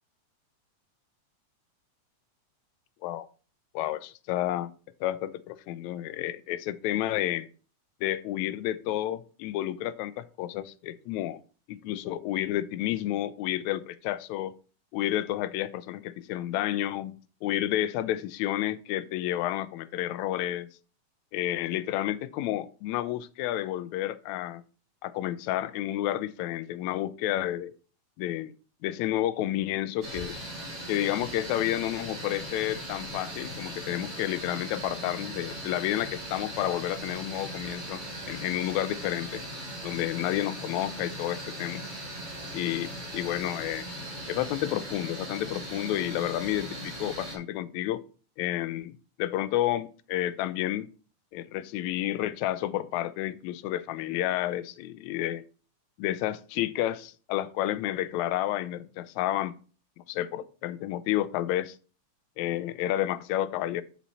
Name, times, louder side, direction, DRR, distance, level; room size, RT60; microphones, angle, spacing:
voice 1, 3.7-4.7 5.0-7.5 8.0-11.4 11.7-14.5 14.9-17.1 17.4-20.7 21.3-24.6 25.0-27.7 28.2-28.5 28.8-30.4 30.9-39.4 39.8-41.8 42.5-43.9 44.3-48.0 48.4-48.9 49.2-50.9 51.3-55.4 56.0-59.5 60.0-61.8 62.4-63.8, left 13 dB, 80° left, 1.8 m, -30 dB
sound 1, 30.0-47.4, right 1 dB, 30° right, 3.8 m, -39 dB
7.4 x 7.0 x 4.1 m
omnidirectional pair, 3.6 m